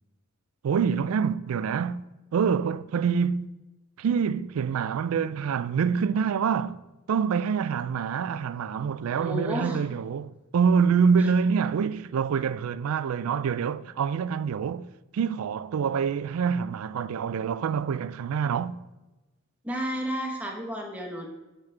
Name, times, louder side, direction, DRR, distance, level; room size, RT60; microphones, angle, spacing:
voice 1, 0.6-2.0 2.3-3.5 4.0-6.8 7.1-18.9, right 6 dB, 80° right, 0.3 m, -26 dB
voice 2, 9.2-9.8 11.2-11.3 19.6-21.3, equal, 5° right, 1.0 m, -32 dB
7.3 x 7.3 x 3.3 m
head